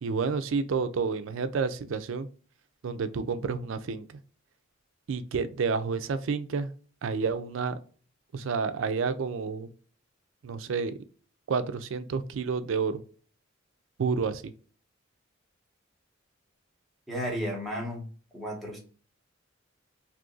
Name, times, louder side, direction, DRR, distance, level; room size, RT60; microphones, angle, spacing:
voice 1, 0.0-2.3 2.8-4.2 5.1-6.7 7.0-7.8 8.3-9.7 10.4-11.0 11.5-13.0 14.0-14.5, right 5 dB, 70° right, 0.4 m, -30 dB
voice 2, 17.1-18.1 18.3-18.8, equal, ahead, 1.1 m, -33 dB
2.7 x 2.5 x 3.8 m
head